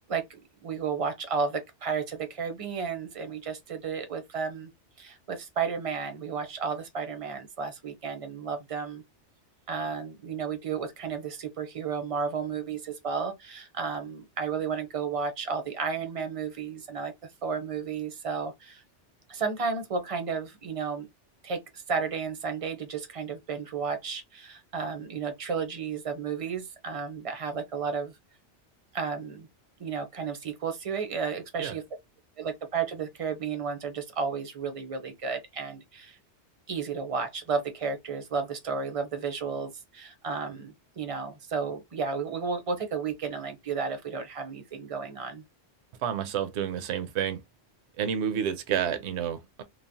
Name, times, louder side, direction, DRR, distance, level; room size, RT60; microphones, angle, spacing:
voice 1, 0.1-4.7 5.0-9.0 9.7-17.1 17.4-18.8 19.3-21.1 21.4-28.1 28.9-29.5 29.8-31.8 32.4-36.2 36.7-45.4, right 5 dB, 40° right, 0.5 m, -33 dB
voice 2, 46.0-47.4 48.0-49.6, right 8 dB, 70° right, 0.9 m, -29 dB
3.1 x 2.0 x 2.6 m
omnidirectional pair, 1.2 m